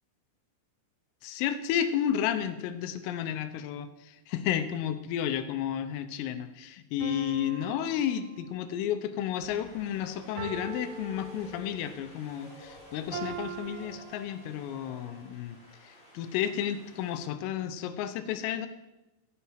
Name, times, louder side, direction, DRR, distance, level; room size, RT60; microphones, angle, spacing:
voice 1, 1.2-15.6 15.8-18.7, left 10 dB, 90° left, 10 dB, 3.5 m, -32 dB
sound 1, 7.0-8.9 10.4-12.0 13.1-14.8, right 6 dB, 80° right, 3.9 m, -42 dB
Wind, 9.4-17.1, equal, 15° left, 3.4 m, -53 dB
15.5 x 9.6 x 5.8 m, 1.0 s
omnidirectional pair, 5.8 m